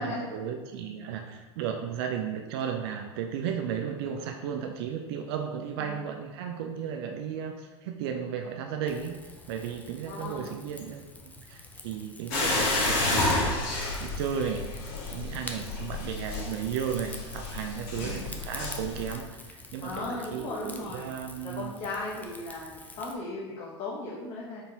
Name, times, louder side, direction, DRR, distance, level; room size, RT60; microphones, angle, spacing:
voice 1, 0.0-9.1 9.5-13.7 14.0-14.7 15.1-21.7, right 7 dB, 55° right, 4 dB, 0.4 m, -34 dB
Rain / Fire, 8.9-23.2, left 2 dB, 10° left, 0.4 m, -47 dB
voice 2, 10.0-10.6 17.9-18.4 19.8-21.0 21.4-24.6, left 2 dB, 35° left, -6 dB, 0.9 m, -37 dB
sound 1, 12.3-19.1, left 2 dB, 50° left, 1.4 m, -30 dB
4.4 x 3.7 x 2.8 m, 1.3 s
hypercardioid pair, 90°, 15 cm